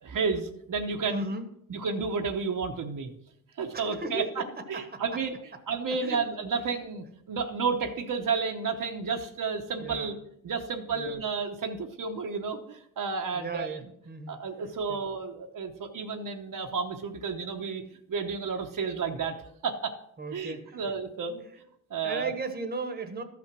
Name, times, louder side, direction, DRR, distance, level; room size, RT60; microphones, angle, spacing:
voice 1, 0.0-1.2 1.7-3.1 3.6-4.4 4.7-5.3 5.7-10.2 10.4-13.9 14.3-17.8 18.1-19.3 19.6-19.9 20.3-21.4 21.9-22.3, right 5 dB, 60° right, 3 dB, 1.0 m, -31 dB
voice 2, 1.1-1.5 3.7-4.4 4.7-5.0 6.0-6.2 9.8-10.1 10.9-11.2 13.3-14.4 14.9-15.0 20.2-20.8 22.0-23.2, right 3 dB, 25° right, 6 dB, 1.3 m, -36 dB
13.5 x 6.0 x 6.0 m, 0.75 s
wide cardioid pair, 135°, 36 cm